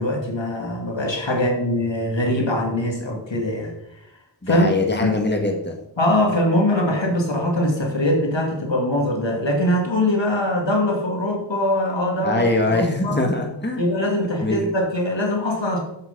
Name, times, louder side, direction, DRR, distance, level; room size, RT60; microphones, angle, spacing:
voice 1, 0.0-3.7 4.5-4.7 5.0-5.1 6.0-12.8 13.0-13.2 13.8-15.8, left 1 dB, 75° left, 0 dB, 2.4 m, -22 dB
voice 2, 4.4-5.8 12.2-13.8 14.4-14.6, left 2 dB, 25° left, 2 dB, 1.7 m, -22 dB
8.1 x 7.9 x 5.3 m, 0.84 s
wide cardioid pair, 40°, 45 cm